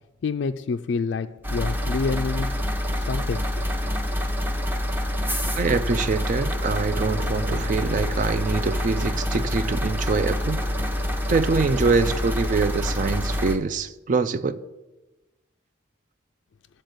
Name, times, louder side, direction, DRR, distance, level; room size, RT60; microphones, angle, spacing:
voice 1, 0.2-2.5 3.0-3.6, left 4 dB, 60° left, 0.3 m, -28 dB
sound 1, 1.4-13.6, left 1 dB, 10° right, 0.8 m, -26 dB
voice 2, 5.6-10.7 11.3-14.6, right 4 dB, 40° right, 0.4 m, -24 dB
sound 2, 6.9-12.8, left 2 dB, 70° right, 1.8 m, -41 dB
10.5 x 4.3 x 7.9 m
head